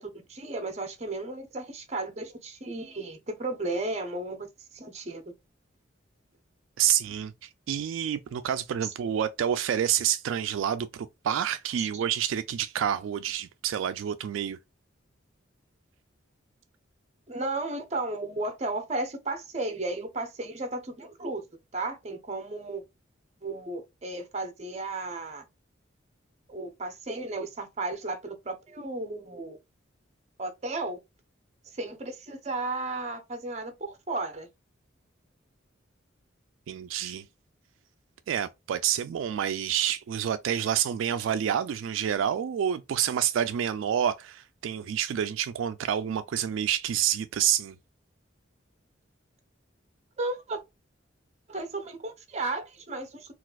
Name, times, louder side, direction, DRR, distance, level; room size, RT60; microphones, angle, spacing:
voice 1, 0.0-4.4 4.7-5.2 11.8-12.0 17.3-21.4 21.7-22.8 23.4-25.4 26.5-29.6 30.4-31.0 31.7-34.5 50.2-50.6 51.5-53.3, right 2 dB, 35° right, 0.7 m, -34 dB
voice 2, 6.8-14.6 36.7-37.2 38.3-47.8, right 9 dB, 85° right, 0.3 m, -28 dB
4.0 x 2.4 x 2.3 m
head